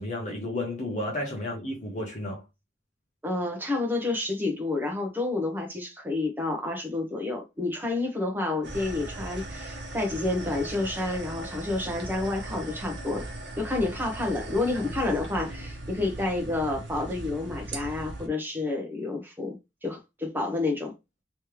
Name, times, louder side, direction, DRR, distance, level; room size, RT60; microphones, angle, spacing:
voice 1, 0.0-2.4, left 1 dB, 40° left, 1.0 m, -32 dB
voice 2, 3.2-13.2 13.6-20.9, left 2 dB, 10° right, 1.1 m, -29 dB
sound 1, 8.6-18.3, right 2 dB, 70° right, 1.0 m, -38 dB
3.2 x 3.2 x 3.2 m
head